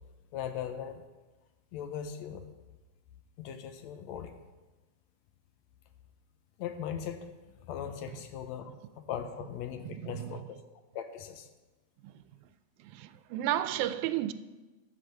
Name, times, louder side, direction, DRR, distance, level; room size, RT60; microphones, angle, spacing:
voice 1, 0.3-1.0 1.7-2.5 3.4-4.4 6.6-7.3 7.6-10.6 10.9-11.5, left 9 dB, 75° left, 1.9 m, -39 dB
voice 2, 9.8-10.3 12.0-12.2 12.8-14.3, right 12 dB, 90° right, 2.0 m, -33 dB
13.5 x 5.3 x 6.5 m
omnidirectional pair, 3.4 m